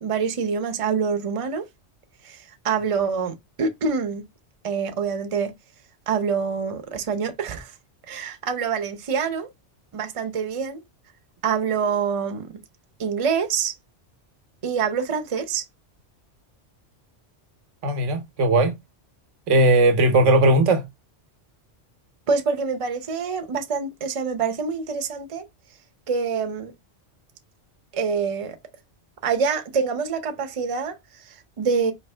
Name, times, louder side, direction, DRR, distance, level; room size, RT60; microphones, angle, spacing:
voice 1, 0.0-1.6 2.2-4.2 4.6-5.5 6.1-7.7 8.1-9.5 9.9-10.8 11.4-12.5 13.0-13.7 14.6-15.6 22.3-25.4 26.1-26.7 27.9-28.6 29.2-31.9, right 5 dB, 35° right, 0.6 m, -26 dB
voice 2, 17.8-18.7 19.5-20.8, right 2 dB, 85° right, 1.2 m, -18 dB
4.6 x 2.9 x 3.2 m
omnidirectional pair, 1.2 m